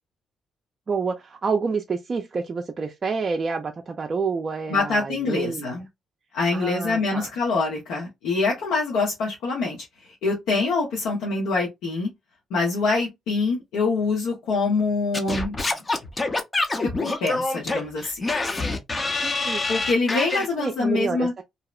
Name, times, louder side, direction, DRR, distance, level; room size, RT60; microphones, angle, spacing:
voice 1, 0.9-5.7 6.5-7.3 19.2-19.6 20.6-21.4, right 4 dB, 40° right, 0.4 m, -28 dB
voice 2, 4.7-5.8 6.3-9.8 10.2-12.1 12.5-15.6 16.7-18.2 19.7-21.3, left 3 dB, 90° left, 0.9 m, -25 dB
Singing / Scratching (performance technique), 15.1-20.5, left 2 dB, 30° left, 0.6 m, -26 dB
2.7 x 2.0 x 2.3 m
cardioid pair, 90°, 0 cm